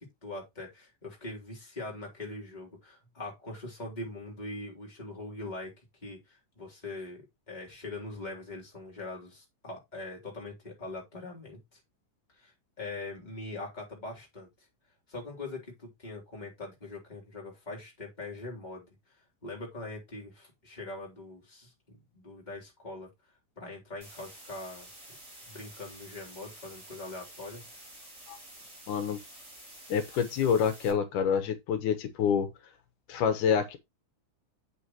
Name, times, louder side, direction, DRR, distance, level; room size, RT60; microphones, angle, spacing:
voice 1, 0.0-5.7 6.0-11.8 12.4-14.5 15.1-18.9 19.4-23.1 23.6-24.9 25.5-27.6, left 2 dB, 15° left, 3.6 m, -42 dB
sound 1, 24.0-30.9, right 1 dB, 25° right, 5.0 m, -50 dB
voice 2, 28.9-29.2 29.9-32.5 33.1-33.8, left 7 dB, 85° left, 2.7 m, -27 dB
8.6 x 7.6 x 3.0 m
omnidirectional pair, 3.5 m